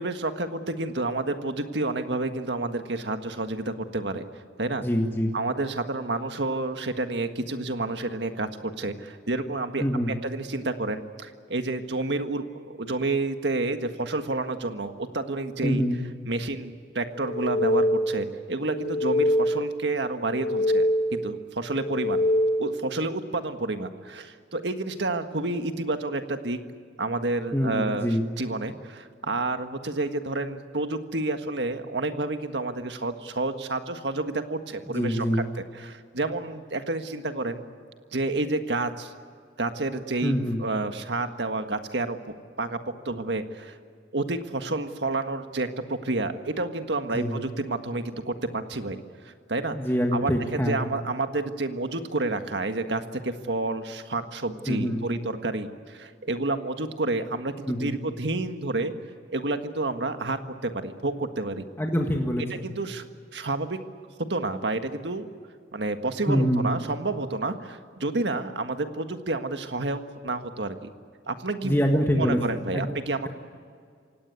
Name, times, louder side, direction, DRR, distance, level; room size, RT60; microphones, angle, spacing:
voice 1, 0.0-4.2 4.6-4.8 5.3-15.8 16.2-22.2 22.6-26.6 27.0-35.4 35.7-37.6 38.1-39.1 39.6-42.2 42.6-43.8 44.1-49.8 50.1-58.9 59.3-61.7 62.5-63.1 63.3-63.8 64.3-65.3 65.7-70.9 71.3-71.8 72.1-73.3, right 2 dB, 75° right, 7 dB, 1.7 m, -30 dB
voice 2, 4.8-5.4 9.8-10.2 15.6-16.0 27.5-28.3 34.9-35.4 40.2-40.6 47.1-47.4 49.7-50.9 54.7-55.0 57.7-58.0 61.8-62.7 66.3-66.7 71.6-72.4 72.7-72.8, equal, 15° left, 1 dB, 1.7 m, -25 dB
sound 1, 17.2-18.3 18.7-19.8 20.2-21.3 21.7-22.9, equal, 60° left, 1.6 m, -25 dB
27.5 x 17.5 x 8.4 m, 2.1 s
head